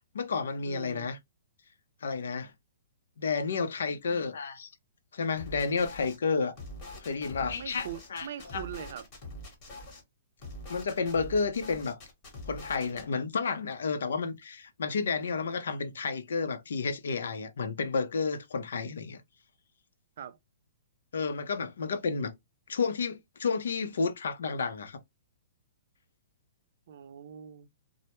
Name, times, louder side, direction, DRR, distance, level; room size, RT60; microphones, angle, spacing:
voice 1, 0.1-1.2 2.0-2.5 3.2-4.7 5.1-6.6 7.0-8.3 8.5-8.6 10.7-12.0 12.5-19.2 21.1-22.3 22.7-25.0, left 4 dB, 80° left, 0.5 m, -31 dB
voice 2, 0.7-1.1 7.6-9.1 20.2-20.4 26.9-27.7, right 9 dB, 55° right, 0.3 m, -42 dB
sound 1, 5.4-6.2 6.5-10.0 10.4-13.0, left 1 dB, 30° left, 1.0 m, -44 dB
2.1 x 2.0 x 2.9 m
hypercardioid pair, 160°, 0 cm